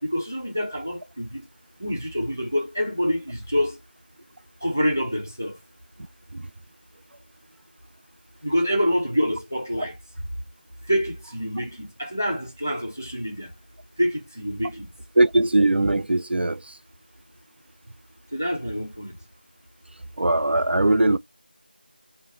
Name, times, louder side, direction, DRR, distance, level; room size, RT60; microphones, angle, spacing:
voice 1, 0.0-1.5 1.8-3.8 4.6-5.6 8.4-10.0 10.8-13.5 14.0-14.9 18.3-19.2, equal, 15° left, 0.4 m, -26 dB
voice 2, 15.2-16.6 20.2-21.2, right 2 dB, 85° right, 0.4 m, -20 dB
2.8 x 2.1 x 3.7 m
figure-of-eight pair, 175°, 6 cm